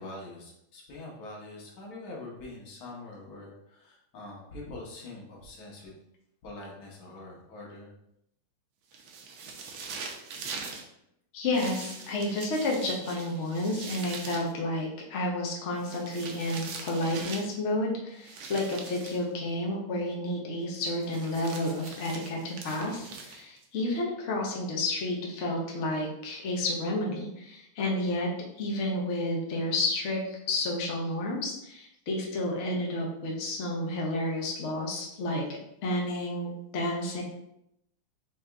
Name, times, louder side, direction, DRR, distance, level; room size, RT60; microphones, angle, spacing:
voice 1, 0.0-5.9 6.4-7.9, left 2 dB, 80° left, -3 dB, 1.9 m, -44 dB
sound 1, 8.9-10.9 11.5-14.5 15.8-17.6 18.2-19.3 20.8-23.6, right 5 dB, 80° right, 1.5 m, -42 dB
voice 2, 11.3-28.3 28.6-35.4 35.8-37.2, left 1 dB, 50° left, -2 dB, 0.9 m, -31 dB
5.0 x 2.9 x 3.4 m, 0.79 s
omnidirectional pair, 2.2 m